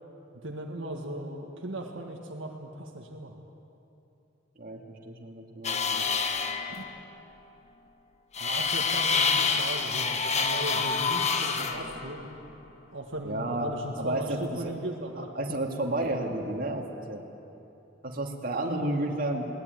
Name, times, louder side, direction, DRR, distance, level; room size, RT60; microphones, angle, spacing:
voice 1, 0.4-3.4 6.7-6.8 8.4-12.3 12.9-15.3, right 1 dB, 80° right, 1 dB, 1.8 m, -37 dB
voice 2, 4.6-6.1 13.2-14.8 15.2-17.2 18.0-19.4, right 1 dB, 50° right, 1 dB, 2.4 m, -32 dB
sound 1, 5.6-7.0 8.3-12.6, left 5 dB, 35° left, 1.2 m, -28 dB
21.0 x 18.5 x 9.5 m, 2.8 s
head